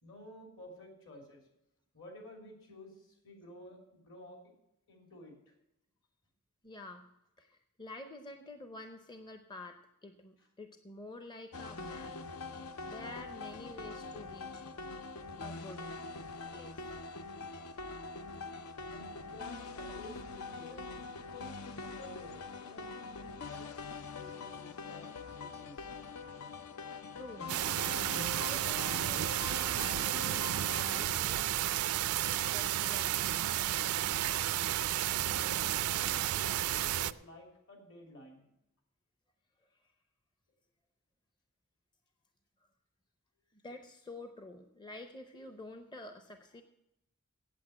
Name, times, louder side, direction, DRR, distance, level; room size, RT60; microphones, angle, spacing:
voice 1, 0.0-1.4 1.9-4.4 4.9-5.5 18.9-23.7 24.1-25.9 35.1-38.4, left 1 dB, 60° left, 2 dB, 3.2 m, -52 dB
voice 2, 6.6-7.1 7.4-12.1 12.9-14.6 15.4-15.9 16.5-16.8 27.1-27.5 28.3-31.5 32.5-33.4 39.7-39.9 42.6-42.7 43.5-46.6, left 2 dB, 20° left, 7 dB, 0.6 m, -49 dB
sound 1, 11.5-31.0, left 4 dB, 80° left, 0.7 m, -44 dB
sound 2, 27.5-37.1, right 12 dB, 80° right, 0.4 m, -32 dB
8.5 x 8.3 x 8.6 m, 0.86 s
head